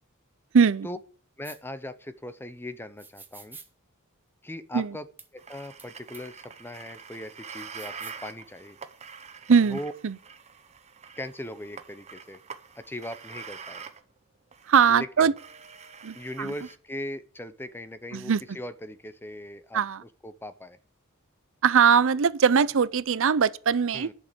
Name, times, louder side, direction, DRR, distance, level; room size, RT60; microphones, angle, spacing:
voice 1, 0.5-0.9 4.7-5.0 9.5-9.8 10.0-10.2 14.7-15.3 16.0-16.5 18.1-18.4 19.7-20.0 21.6-24.1, right 6 dB, 65° right, 0.5 m, -21 dB
voice 2, 1.4-3.6 4.4-5.0 5.3-8.8 9.7-9.9 11.2-12.4 12.8-13.8 14.9-15.3 16.1-20.8 23.9-24.1, left 1 dB, 10° left, 0.7 m, -39 dB
sound 1, 1.4-1.6 3.0-3.7 5.2-5.3 5.8-5.9 6.1-6.2 7.6-8.2, right 4 dB, 10° right, 1.3 m, -47 dB
sound 2, 5.4-14.0 14.5-15.0 15.4-16.8, right 6 dB, 30° right, 0.9 m, -45 dB
10.5 x 6.6 x 7.7 m
head